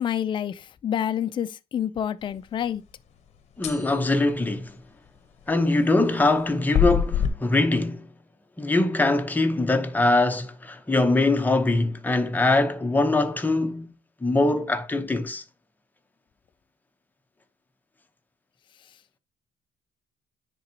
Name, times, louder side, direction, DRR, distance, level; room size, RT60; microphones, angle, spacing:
voice 1, 0.0-2.8, left 9 dB, 35° left, 0.4 m, -28 dB
sound 1, 3.6-4.0 6.7-7.3, left 8 dB, 50° left, 0.9 m, -23 dB
voice 2, 3.6-4.7 5.5-8.1 8.6-13.9 14.2-15.4, left 2 dB, 10° left, 0.9 m, -22 dB
9.9 x 3.8 x 2.8 m
cardioid pair, 115°, 14 cm